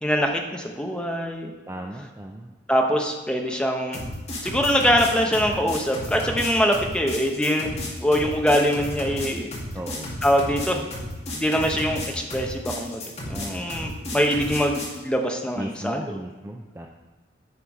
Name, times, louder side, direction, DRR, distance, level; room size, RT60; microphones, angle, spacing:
voice 1, 0.0-1.5 2.7-4.0 4.4-7.7 8.0-9.5 10.2-10.9 11.3-16.1, equal, 5° left, 2 dB, 0.8 m, -23 dB
voice 2, 1.7-2.5 9.7-10.1 15.6-16.9, right 1 dB, 15° right, 2 dB, 0.4 m, -35 dB
sound 1, 3.9-15.0, left 1 dB, 35° left, 2.1 m, -33 dB
9.8 x 5.8 x 4.7 m, 1.3 s
head